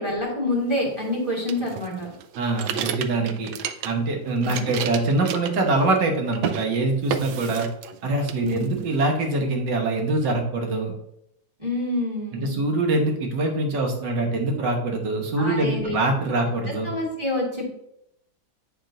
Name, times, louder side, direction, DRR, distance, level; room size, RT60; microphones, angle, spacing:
voice 1, 0.0-2.1 4.4-4.7 8.4-8.8 11.6-12.7 15.4-15.9 16.5-16.6 16.8-17.7, left 1 dB, 15° right, -3 dB, 2.0 m, -27 dB
sound 1, 1.5-4.1 4.4-6.1 6.3-6.7 7.1-8.0 8.3-9.1, right 8 dB, 90° right, 1.4 m, -31 dB
voice 2, 2.4-3.5 3.8-7.7 8.0-10.9 12.3-16.9, right 2 dB, 65° right, 2 dB, 1.9 m, -24 dB
9.1 x 3.7 x 3.8 m, 0.77 s
omnidirectional pair, 2.1 m